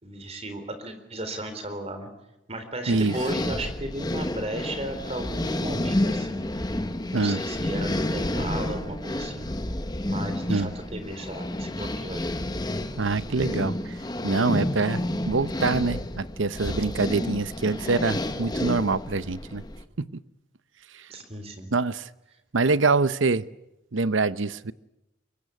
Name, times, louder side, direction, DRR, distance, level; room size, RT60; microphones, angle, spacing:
voice 1, 0.0-2.1 2.5-6.5 7.1-9.5 10.0-12.3 21.1-21.7, right 1 dB, 30° right, 8 dB, 3.9 m, -35 dB
sound 1, 2.9-19.8, left 1 dB, 20° left, 1.2 m, -30 dB
voice 2, 13.0-13.7 14.2-19.6 20.0-20.1 21.7-22.1 22.5-23.4 23.9-24.7, right 3 dB, 75° right, 16 dB, 0.8 m, -25 dB
24.0 x 22.5 x 8.4 m, 0.91 s
head